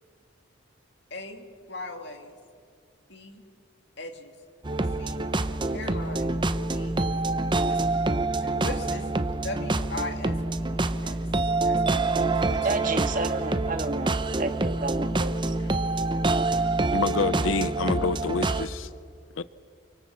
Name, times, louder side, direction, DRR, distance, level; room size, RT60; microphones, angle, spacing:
voice 1, 1.1-2.4 3.1-3.4 4.0-4.3 5.0-5.3 5.7-6.3 6.7-7.0 7.6-8.0 8.4-9.1 9.4-11.2 11.6-12.7, left 2 dB, 60° left, 2.8 m, -39 dB
sound 1, 4.6-18.7, right 2 dB, 25° right, 0.8 m, -26 dB
voice 2, 12.6-15.3, right 2 dB, 45° right, 1.6 m, -31 dB
voice 3, 16.9-18.9 19.4-19.5, left 4 dB, 85° left, 0.6 m, -27 dB
28.5 x 25.0 x 7.3 m
head